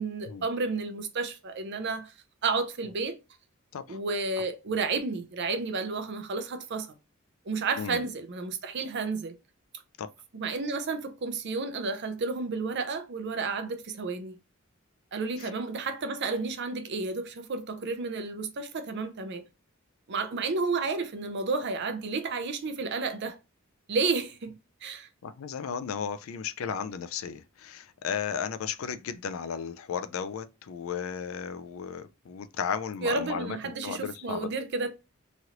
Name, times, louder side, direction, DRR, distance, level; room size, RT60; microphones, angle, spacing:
voice 1, 0.0-2.1 2.4-3.2 3.9-6.9 7.5-9.4 10.3-14.4 15.1-19.4 20.1-23.4 23.9-25.1 33.0-34.9, right 4 dB, 55° right, 0.5 m, -31 dB
voice 2, 25.2-34.5, left 7 dB, 75° left, 0.4 m, -34 dB
3.1 x 2.5 x 2.8 m
head